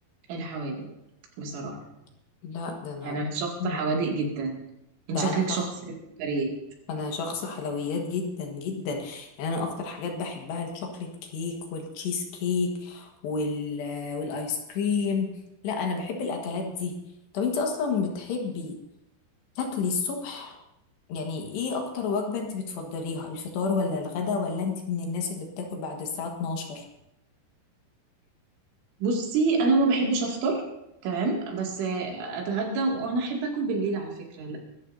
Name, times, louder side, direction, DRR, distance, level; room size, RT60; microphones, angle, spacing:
voice 1, 0.3-0.9 1.4-1.8 3.0-4.6 5.1-6.5 29.0-30.6 31.0-34.6, right 3 dB, 80° right, 0 dB, 4.8 m, -27 dB
voice 2, 2.4-3.2 3.6-3.8 5.1-5.7 6.9-15.3 15.6-16.9 17.3-18.8 19.6-20.6 21.1-26.9, left 4 dB, 70° left, 2 dB, 3.5 m, -30 dB
23.5 x 13.0 x 2.7 m, 0.86 s
omnidirectional pair, 5.4 m